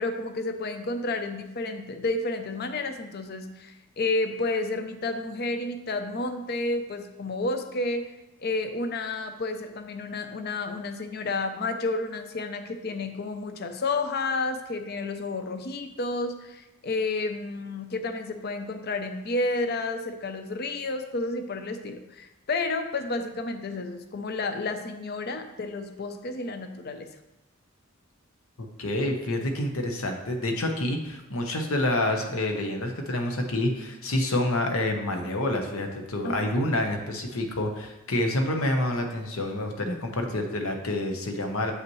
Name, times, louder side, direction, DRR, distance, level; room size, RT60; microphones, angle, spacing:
voice 1, 0.0-8.1 8.4-27.1 36.2-36.3, left 2 dB, 45° left, 7 dB, 0.5 m, -31 dB
voice 2, 28.6-41.7, left 1 dB, 75° left, 4 dB, 0.9 m, -28 dB
7.9 x 5.7 x 3.1 m, 1.0 s
head